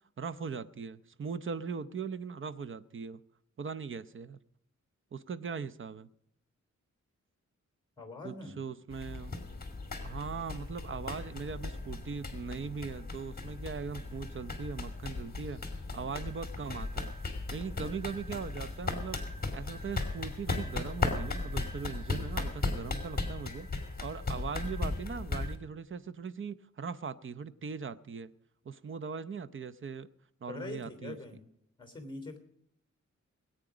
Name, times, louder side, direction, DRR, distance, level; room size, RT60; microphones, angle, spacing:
voice 1, 0.2-3.2 3.6-4.4 5.1-6.1 8.2-9.4 10.0-15.6 15.9-17.1 17.5-19.2 19.5-28.3 28.6-30.1 30.4-31.2, right 5 dB, 45° right, 0.7 m, -40 dB
voice 2, 8.0-8.6 30.5-31.4 31.8-32.4, left 2 dB, 15° left, 3.2 m, -43 dB
sound 1, 8.9-25.6, left 3 dB, 30° left, 2.6 m, -37 dB
20.5 x 9.1 x 5.0 m
wide cardioid pair, 110°, 29 cm